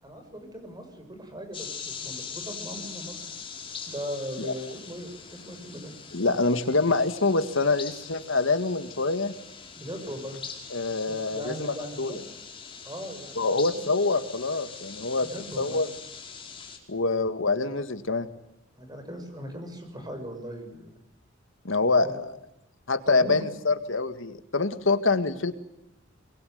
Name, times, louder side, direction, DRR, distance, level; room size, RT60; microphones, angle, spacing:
voice 1, 0.0-3.3 3.9-5.9 9.8-10.4 11.3-12.2 12.8-13.8 15.2-15.8 18.8-20.9 22.0-22.1 23.1-23.4, equal, 20° right, 5 dB, 6.7 m, -39 dB
sound 1, 1.5-16.8, left 6 dB, 25° left, 4.8 m, -42 dB
voice 2, 6.1-9.3 10.7-12.2 13.4-15.3 15.6-15.9 16.9-18.3 21.6-22.3 22.9-25.5, left 3 dB, 70° left, 10 dB, 2.0 m, -25 dB
24.5 x 23.5 x 9.5 m, 0.85 s
head